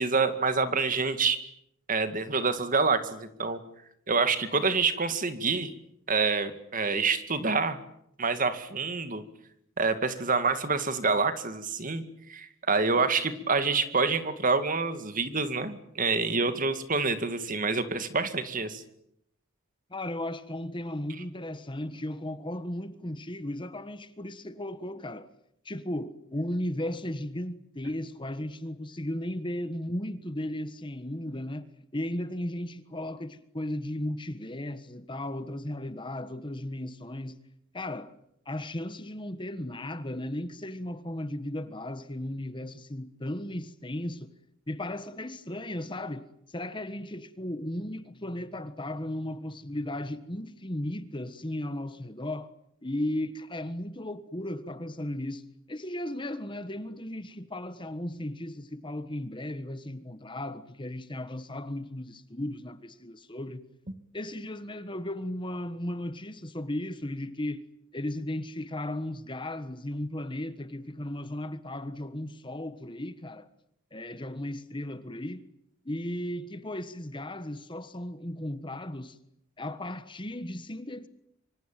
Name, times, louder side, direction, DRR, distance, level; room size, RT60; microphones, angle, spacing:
voice 1, 0.0-1.4 1.9-3.6 4.1-5.7 6.1-7.8 8.2-9.2 9.8-12.0 12.3-18.8, right 4 dB, 40° right, 2.2 m, -27 dB
voice 2, 19.9-25.3 25.6-31.7 31.9-37.4 37.7-38.1 38.4-44.3 44.7-52.5 52.8-63.6 64.1-67.6 67.9-73.5 73.9-75.4 75.8-79.2 79.6-81.1, left 1 dB, 25° left, 1.4 m, -35 dB
25.0 x 25.0 x 9.1 m
head